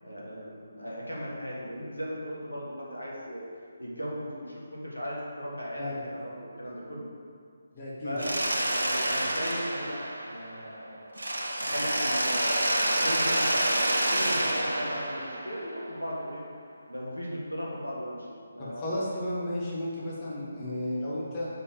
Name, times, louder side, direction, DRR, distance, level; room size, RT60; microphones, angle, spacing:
voice 1, 0.0-3.5 3.8-7.1 8.0-8.4 8.6-10.0 10.3-11.1 11.6-16.4 16.9-18.9, equal, 85° left, -5 dB, 1.8 m, -37 dB
voice 2, 7.7-8.2 18.6-21.5, left 1 dB, 25° left, -8 dB, 1.6 m, -33 dB
Mechanisms, 8.2-10.8 11.2-16.0, right 1 dB, 70° right, 0.8 m, -28 dB
5.4 x 5.1 x 6.6 m, 2.2 s
figure-of-eight pair, 145°, 0 cm